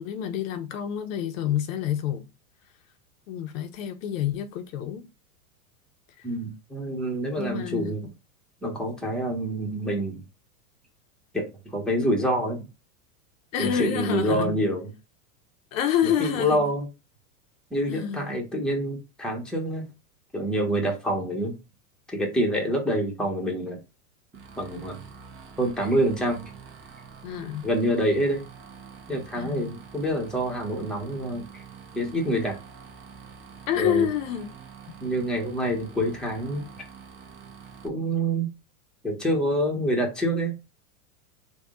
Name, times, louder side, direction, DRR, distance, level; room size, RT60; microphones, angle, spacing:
voice 1, 0.0-2.3 3.3-5.1 6.2-6.3 7.4-7.9 13.5-14.6 15.7-16.7 17.8-18.4 27.2-27.7 29.4-29.7 33.7-34.5 34.9-35.0, left 10 dB, 60° left, 0.7 m, -28 dB
voice 2, 6.2-8.1 8.6-10.2 11.3-12.7 13.6-14.9 16.0-16.9 17.7-19.9 20.3-21.5 22.1-23.8 24.6-25.0 25.6-26.4 27.6-28.4 29.1-31.6 31.9-32.6 33.8-34.1 35.0-36.6 37.8-38.5 39.0-40.5, right 1 dB, ahead, 0.9 m, -26 dB
sound 1, 24.3-37.9, right 6 dB, 25° right, 0.8 m, -46 dB
3.5 x 2.3 x 3.7 m
hypercardioid pair, 120°, 45 cm